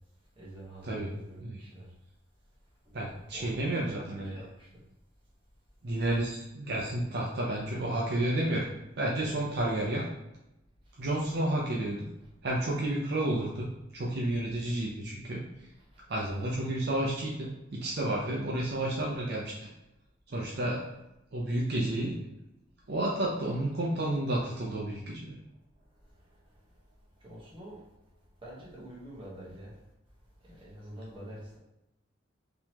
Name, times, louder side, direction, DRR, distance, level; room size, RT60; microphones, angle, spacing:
voice 1, 0.4-1.9 2.9-3.0 3.3-4.8 11.2-11.3 15.9-16.0 27.2-27.8 28.4-29.7 30.4-31.6, right 1 dB, 25° right, -5 dB, 1.1 m, -46 dB
voice 2, 2.9-4.3 5.8-8.7 9.0-10.1 11.0-12.1 12.4-13.7 13.9-15.4 16.1-19.5 20.3-20.9 21.3-22.2 22.9-25.3, right 1 dB, 55° right, -3 dB, 0.6 m, -31 dB
3.7 x 3.0 x 2.9 m, 0.91 s
head